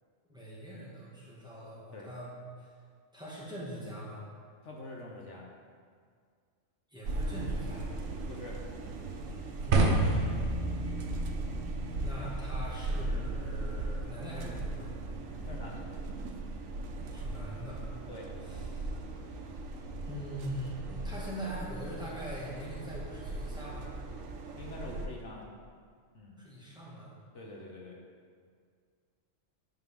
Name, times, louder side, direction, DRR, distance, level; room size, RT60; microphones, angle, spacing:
voice 1, 0.3-2.3 2.6-2.7 3.1-4.2 6.9-7.9 9.3-10.4 12.0-14.9 17.1-17.8 18.5-18.9 20.0-23.9 26.4-27.1, equal, 5° right, -7 dB, 1.9 m, -42 dB
voice 2, 4.6-5.4 8.3-8.6 15.4-15.8 18.1-18.3 24.5-25.5 26.1-26.4 27.3-28.0, left 1 dB, 70° left, -2 dB, 1.3 m, -45 dB
sound 1, 7.0-25.1, right 2 dB, 90° right, 1.2 m, -38 dB
sound 2, 9.7-15.8, right 2 dB, 65° right, 1.1 m, -33 dB
9.7 x 6.6 x 3.7 m, 2.1 s
omnidirectional pair, 1.3 m